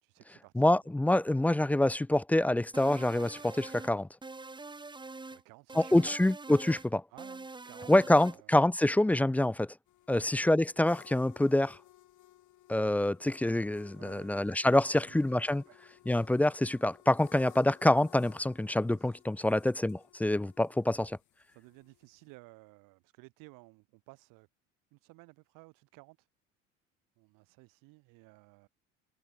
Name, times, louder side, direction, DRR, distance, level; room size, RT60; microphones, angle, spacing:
voice 1, 0.0-0.6 5.3-6.2 7.1-8.9 10.1-10.3 13.9-14.3 14.9-15.2 15.7-15.8 19.0-19.2 21.5-24.5 24.9-26.3 27.2-28.7, right 26 dB, 60° right, 2.9 m, -55 dB
voice 2, 0.6-4.1 5.9-7.0 7.9-9.7 10.1-11.8 12.7-15.6 16.1-21.2, left 1 dB, 5° left, 0.5 m, -26 dB
sound 1, 2.7-3.9 4.2-5.4 5.7-6.9 7.2-8.4, right 3 dB, 10° right, 1.6 m, -45 dB
sound 2, 9.9-22.3, left 14 dB, 50° left, 7.5 m, -59 dB
figure-of-eight pair, 60°, 38 cm